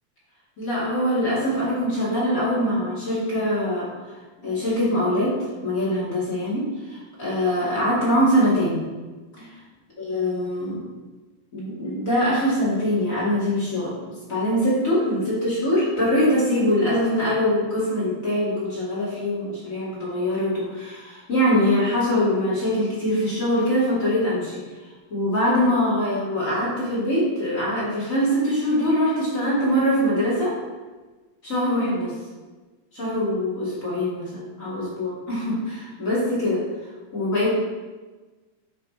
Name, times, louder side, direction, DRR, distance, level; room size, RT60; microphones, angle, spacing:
voice 1, 0.6-3.9 4.4-5.4 5.6-8.8 9.4-9.5 10.0-10.8 11.5-13.9 14.3-24.6 25.1-30.5 31.4-32.1 32.9-36.6 37.1-37.5, equal, 35° left, -8 dB, 1.4 m, -23 dB
9.5 x 3.3 x 4.2 m, 1.3 s
omnidirectional pair, 4.2 m